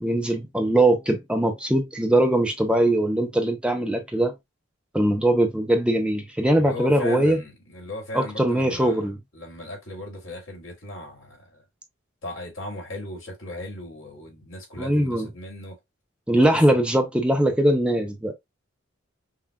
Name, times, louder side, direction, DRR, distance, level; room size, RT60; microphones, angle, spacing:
voice 1, 0.0-4.3 4.9-7.4 8.1-9.2 14.8-15.3 16.3-18.3, right 1 dB, 5° right, 0.6 m, -21 dB
voice 2, 6.5-9.1 9.3-11.6 12.2-15.8 16.3-16.8, left 2 dB, 75° left, 2.2 m, -37 dB
5.6 x 2.4 x 2.3 m
head